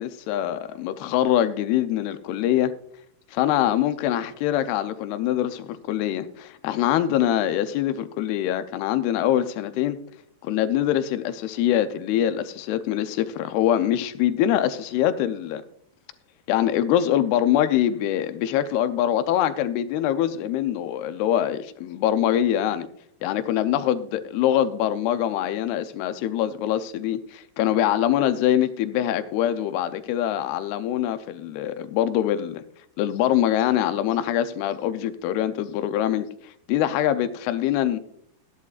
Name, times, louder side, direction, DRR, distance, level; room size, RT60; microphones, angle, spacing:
voice 1, 0.0-2.7 3.3-10.0 10.4-15.6 16.5-22.9 23.2-32.6 33.0-36.3 36.7-38.0, left 11 dB, 80° left, 2.6 m, -24 dB
15.0 x 10.5 x 2.4 m
omnidirectional pair, 4.5 m